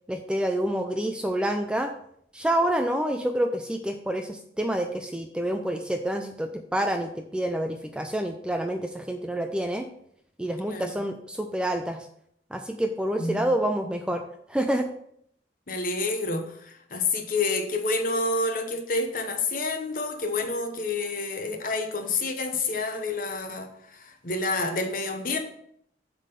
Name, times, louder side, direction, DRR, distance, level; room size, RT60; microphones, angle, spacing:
voice 1, 0.1-1.9 2.3-9.9 10.4-12.1 12.5-14.2 14.5-14.9, right 1 dB, 5° right, 5 dB, 0.3 m, -28 dB
voice 2, 10.7-11.0 13.2-13.5 15.7-25.4, left 3 dB, 45° left, 6 dB, 0.9 m, -29 dB
7.2 x 3.8 x 5.5 m, 0.67 s
head